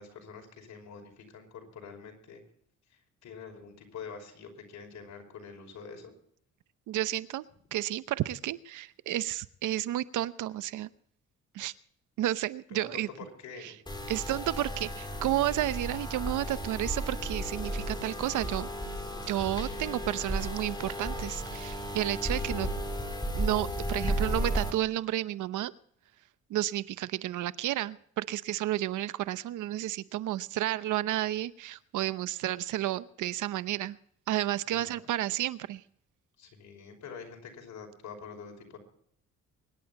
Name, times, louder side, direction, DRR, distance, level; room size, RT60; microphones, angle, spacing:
voice 1, 0.0-2.4 2.9-6.1 12.7-13.9 34.6-35.0 36.4-38.8, left 5 dB, 70° left, 3 dB, 5.7 m, -46 dB
voice 2, 6.9-7.4 7.7-10.9 11.5-11.7 12.2-13.1 13.6-13.7 14.1-18.7 19.3-22.7 23.4-25.7 26.5-34.0 34.3-35.8, right 14 dB, 80° right, 15 dB, 0.9 m, -31 dB
sound 1, 13.9-24.7, equal, 15° left, 4.2 m, -34 dB
24.0 x 11.0 x 4.1 m, 0.64 s
cardioid pair, 90°, 30 cm